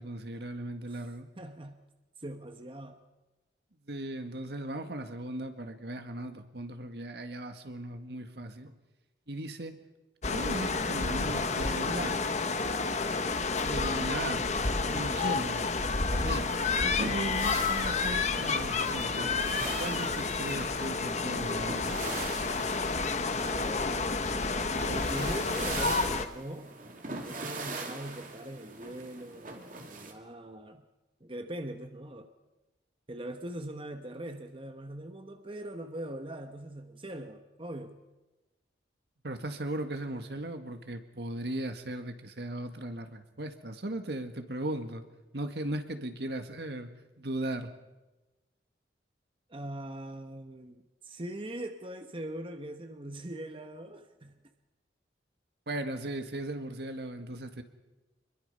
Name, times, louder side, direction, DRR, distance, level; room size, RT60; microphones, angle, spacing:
voice 1, 0.0-1.3 3.9-8.7 9.3-9.7 10.3-12.2 13.6-14.4 14.9-15.7 16.0-16.5 16.8-19.2 19.8-21.8 39.2-45.0 45.3-46.9 47.2-47.7 55.7-57.6, right 1 dB, 65° right, 7 dB, 1.9 m, -37 dB
voice 2, 1.4-1.8 2.2-3.0 23.3-23.9 24.9-26.7 27.1-30.8 31.2-32.3 33.1-38.0 49.5-54.4, right 1 dB, 30° right, 6 dB, 1.1 m, -41 dB
sound 1, 10.2-26.3, left 4 dB, 40° left, 1.2 m, -30 dB
sound 2, 14.6-30.1, right 3 dB, 50° right, 2.8 m, -42 dB
25.5 x 22.5 x 5.6 m, 1.1 s
head